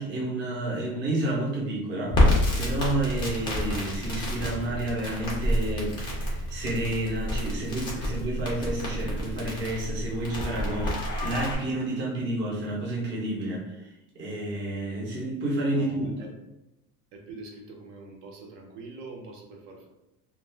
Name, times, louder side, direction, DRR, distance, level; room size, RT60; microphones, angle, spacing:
voice 1, 0.0-16.1, right 1 dB, 30° right, -3 dB, 0.6 m, -30 dB
Crackle, 2.1-11.5, left 1 dB, 15° left, 0.3 m, -28 dB
voice 2, 15.7-16.3 17.1-19.9, right 3 dB, 65° right, 0 dB, 0.7 m, -44 dB
2.4 x 2.2 x 3.2 m, 0.93 s
cardioid pair, 165°, 40 cm